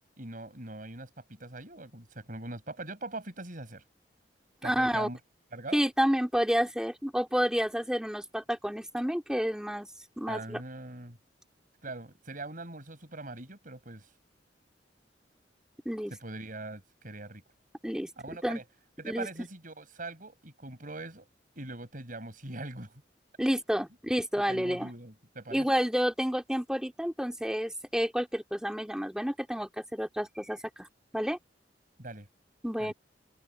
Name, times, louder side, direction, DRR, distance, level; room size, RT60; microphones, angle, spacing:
voice 1, 0.2-3.8 4.6-5.2 5.5-5.8 10.3-11.2 11.8-14.1 16.2-17.4 18.2-18.6 19.0-21.2 21.5-22.9 24.5-25.8 32.0-32.3 32.8-32.9, right 2 dB, 50° right, 6.8 m, -42 dB
voice 2, 4.6-5.1 5.7-9.9 10.2-10.6 15.8-16.1 17.8-18.1 18.4-18.6 19.0-19.5 23.4-24.9 25.5-30.9 31.1-31.4 32.6-32.9, equal, 5° right, 3.0 m, -30 dB
open air
head